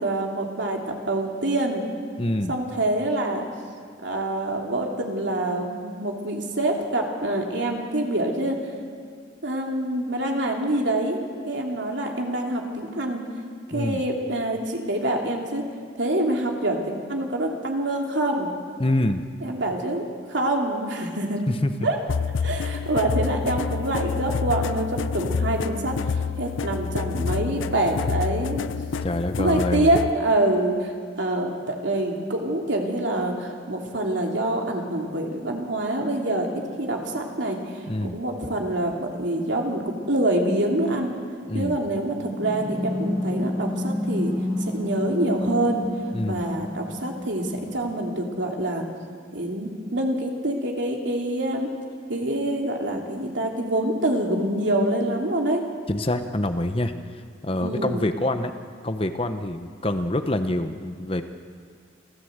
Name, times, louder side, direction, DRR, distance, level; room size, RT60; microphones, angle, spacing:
voice 1, 0.0-1.8 2.5-3.5 4.0-8.9 9.4-11.2 11.4-13.2 13.7-15.6 16.0-18.5 19.4-21.4 21.8-22.0 22.4-28.6 29.4-30.9 31.2-36.5 36.8-37.6 38.0-41.1 41.5-44.3 44.6-45.8 46.2-48.8 49.3-51.7 52.1-55.6 57.6-58.1, right 1 dB, 70° right, 1 dB, 2.9 m, -26 dB
voice 2, 2.2-2.5 13.7-14.0 18.8-19.2 21.5-21.7 29.0-29.9 37.9-38.2 41.5-41.8 46.1-46.4 55.9-56.9 57.4-58.5 58.8-61.2, left 1 dB, 30° left, 8 dB, 0.9 m, -26 dB
sound 1, 22.1-30.1, left 5 dB, 80° left, 0.5 m, -28 dB
sound 2, 42.3-47.9, left 1 dB, 25° right, 5.1 m, -29 dB
27.0 x 15.0 x 8.0 m, 2.1 s
head